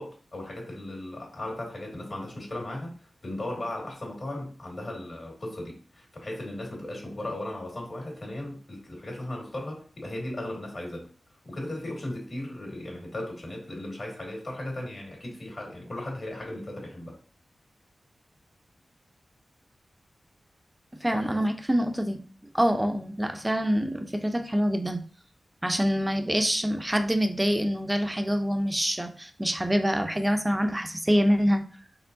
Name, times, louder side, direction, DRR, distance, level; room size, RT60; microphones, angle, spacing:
voice 1, 0.0-11.1 11.4-17.2 21.1-21.4, left 1 dB, 50° left, -1 dB, 2.1 m, -37 dB
voice 2, 21.0-22.2 22.5-25.0 25.6-31.6, equal, 15° right, 6 dB, 0.6 m, -25 dB
4.4 x 3.6 x 2.7 m, 0.43 s
cardioid pair, 55°, 0 cm